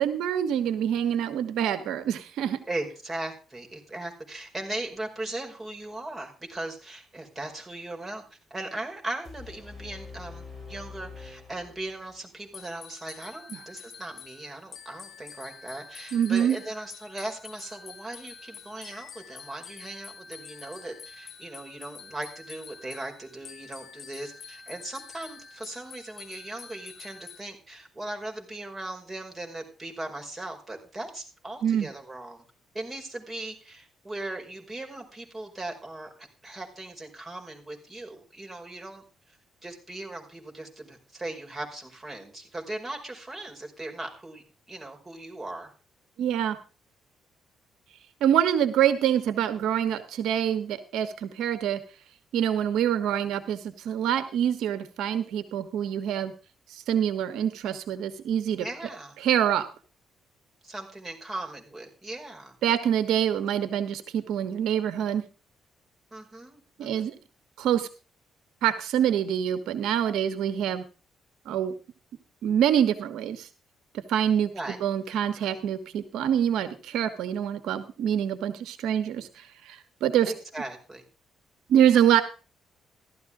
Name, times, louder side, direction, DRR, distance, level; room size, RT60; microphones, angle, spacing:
voice 1, 0.0-2.6 16.1-16.6 31.6-31.9 46.2-46.6 48.2-51.8 52.3-56.3 56.7-58.6 59.2-59.7 62.6-65.2 66.8-67.1 67.6-67.9 68.6-70.8 71.4-71.7 72.4-73.5 74.1-74.5 74.8-80.3 81.7-82.2, right 9 dB, 85° right, 10 dB, 1.3 m, -25 dB
voice 2, 2.7-32.4 32.7-39.4 39.6-45.7 58.5-59.2 60.6-62.6 66.1-67.1 74.5-74.8 75.1-75.6 80.2-81.0, right 2 dB, 20° right, 2 dB, 5.2 m, -38 dB
sound 1, 9.2-12.2, left 4 dB, ahead, 4.2 m, -44 dB
sound 2, 12.5-27.4, left 6 dB, 55° left, 2.0 m, -47 dB
15.0 x 12.5 x 3.7 m, 0.35 s
cardioid pair, 90°, 0 cm